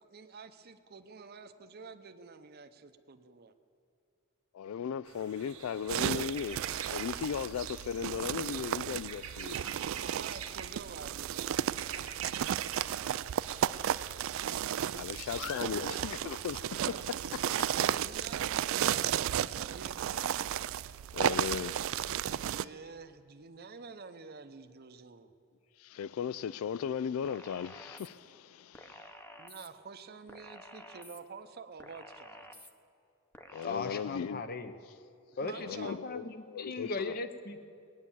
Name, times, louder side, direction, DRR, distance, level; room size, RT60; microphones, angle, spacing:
voice 1, 0.0-3.6 10.0-14.0 15.4-15.8 17.7-20.6 22.1-25.3 29.4-32.7 35.4-36.0, right 4 dB, 50° right, 0.7 m, -50 dB
voice 2, 4.5-9.6 14.8-17.8 21.1-22.7 25.8-29.1 33.5-34.4 35.6-37.1, left 7 dB, 80° left, 0.3 m, -37 dB
sound 1, 5.1-16.2, right 8 dB, 90° right, 1.2 m, -46 dB
sound 2, 5.9-22.6, right 10 dB, 65° right, 0.3 m, -34 dB
sound 3, 27.2-28.1 28.7-29.7 30.3-31.2 31.8-32.7 33.3-33.7, left 1 dB, 10° left, 0.8 m, -51 dB
voice 3, 33.6-34.7 35.4-37.7, left 3 dB, 45° left, 0.9 m, -38 dB
19.0 x 9.4 x 7.3 m
head